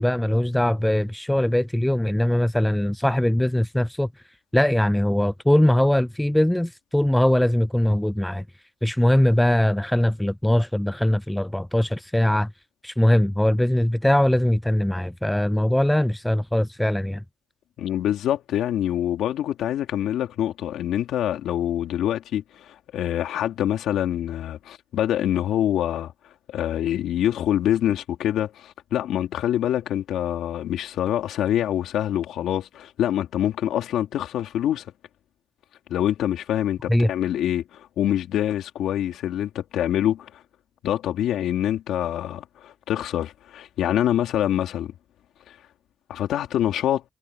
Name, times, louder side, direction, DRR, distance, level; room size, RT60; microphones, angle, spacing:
voice 1, 0.0-4.1 4.5-8.5 8.8-12.5 12.8-17.2 36.9-37.1, left 1 dB, 5° left, 0.5 m, -21 dB
voice 2, 17.8-26.1 26.5-34.9 35.9-40.4 40.8-44.9 45.5-45.6 46.1-47.0, left 11 dB, 80° left, 3.6 m, -25 dB
cardioid pair, 90°, 0 cm